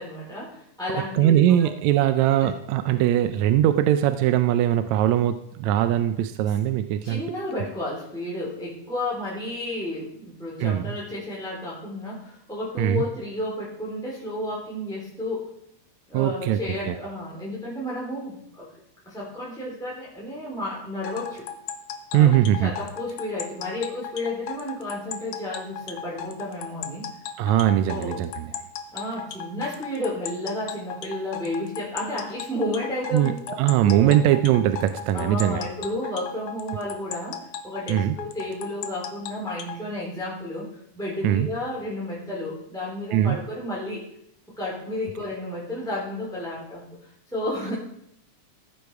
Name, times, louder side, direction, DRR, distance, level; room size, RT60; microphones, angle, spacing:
voice 1, 0.0-1.7 2.4-2.5 2.8-3.0 7.0-15.5 16.1-18.7 19.0-21.5 22.1-22.3 22.6-27.1 27.8-28.2 28.9-33.6 33.8-34.1 35.1-40.7 40.9-44.0 44.6-46.8 47.3-47.7, left 1 dB, ahead, -7 dB, 3.4 m, -32 dB
voice 2, 0.9-7.2 10.6-10.9 12.8-13.0 16.1-16.6 16.9-17.0 22.1-22.7 27.4-28.5 33.1-33.3 33.6-35.6 37.9-38.2 41.2-41.5 43.1-43.4, right 12 dB, 80° right, 9 dB, 1.8 m, -21 dB
sound 1, 21.0-39.8, left 8 dB, 75° left, 2.1 m, -35 dB
15.5 x 8.1 x 4.8 m, 0.74 s
omnidirectional pair, 3.4 m